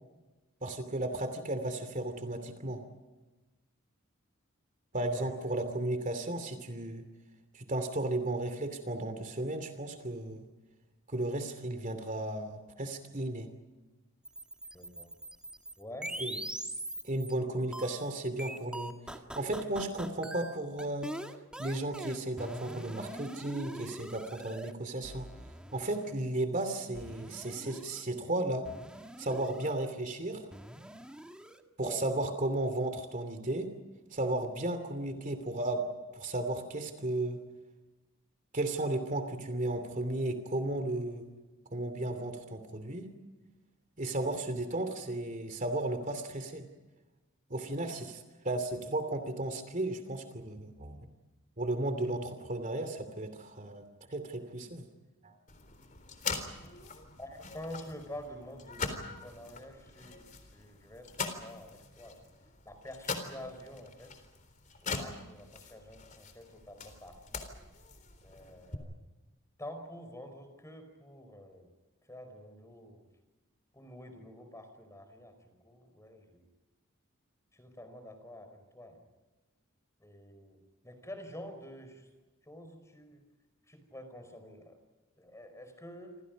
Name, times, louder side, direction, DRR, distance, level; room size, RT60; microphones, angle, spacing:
voice 1, 0.6-2.8 4.9-7.0 7.5-10.5 11.1-13.5 16.2-16.4 17.0-18.9 19.3-21.1 21.6-25.3 25.7-28.7 29.2-30.4 31.8-33.7 34.1-35.8 36.1-37.4 38.5-41.3 41.7-43.1 44.0-46.6 47.5-51.0 51.6-54.9 55.2-55.3, right 2 dB, 40° right, 8 dB, 2.8 m, -34 dB
voice 2, 5.1-5.7 14.7-15.1 15.8-16.2 17.6-17.7 31.8-32.0 57.2-60.2 60.5-62.3 62.6-64.1 64.8-67.4 68.2-68.9 69.6-71.7 72.1-73.1 73.7-76.5 77.5-79.0 80.0-82.1 82.5-83.2 83.7-84.8 85.2-86.2, left 1 dB, 15° left, 8 dB, 4.9 m, -48 dB
sound 1, 14.3-17.3 17.7-24.7 25.0-26.1 26.9-28.0 28.6-29.7 30.5-31.6, right 1 dB, 5° right, 1.7 m, -43 dB
sound 2, 55.5-68.8, left 4 dB, 40° left, 3.7 m, -42 dB
28.0 x 27.5 x 5.3 m, 1.2 s
head